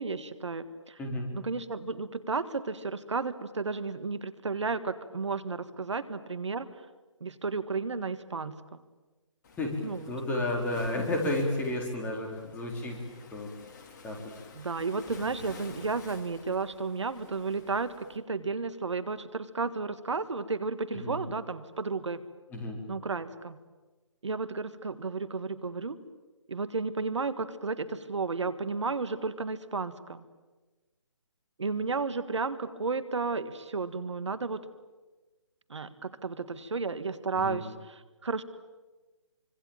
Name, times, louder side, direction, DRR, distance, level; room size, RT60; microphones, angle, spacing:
voice 1, 0.0-1.0 1.3-6.8 7.2-8.8 9.8-10.1 14.5-22.2 22.9-23.6 24.2-26.0 26.5-30.2 31.6-34.6 35.7-38.4, right 4 dB, 65° right, 13 dB, 1.8 m, -33 dB
Waves surf, 9.4-18.2, left 4 dB, 35° left, 3.2 m, -50 dB
voice 2, 9.6-13.0 13.3-13.5 14.0-14.2 20.9-21.2 22.5-22.8 37.4-37.6, left 1 dB, 10° left, 0 dB, 4.2 m, -32 dB
25.5 x 25.5 x 9.0 m, 1.2 s
figure-of-eight pair, 150°, 16 cm